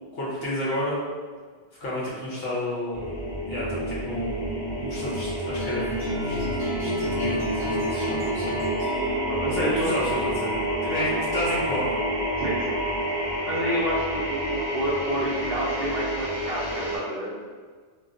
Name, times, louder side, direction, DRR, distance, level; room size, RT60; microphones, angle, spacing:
voice 1, 0.1-1.0 1.8-3.1 3.5-6.5 6.8-8.5 9.5-10.5 10.9-12.0, left 1 dB, 60° left, -6 dB, 1.0 m, -31 dB
sound 1, 2.9-17.0, right 1 dB, 30° left, 0.9 m, -28 dB
sound 2, 5.6-10.7, equal, 15° right, 0.8 m, -36 dB
voice 2, 9.3-9.9 10.8-11.2 12.4-12.8 13.5-17.3, equal, 60° right, -5 dB, 0.8 m, -30 dB
2.9 x 2.2 x 2.5 m, 1.5 s
omnidirectional pair, 1.2 m